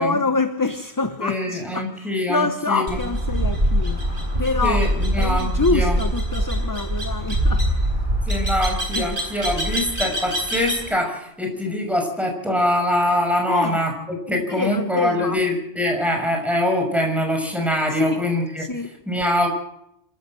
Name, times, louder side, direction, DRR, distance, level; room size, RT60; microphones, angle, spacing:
voice 1, 0.0-4.0 4.4-4.9 5.2-8.0 8.9-9.1 13.5-13.8 14.3-15.4 17.9-18.2 18.6-18.9, left 3 dB, 20° left, 9 dB, 0.9 m, -26 dB
voice 2, 1.2-2.8 4.6-5.9 8.3-13.9 14.3-18.6 19.1-19.5, left 1 dB, ahead, 2 dB, 5.9 m, -23 dB
sound 1, 2.9-10.9, right 1 dB, 50° right, 7.5 m, -23 dB
26.0 x 13.5 x 7.7 m, 0.77 s
omnidirectional pair, 1.1 m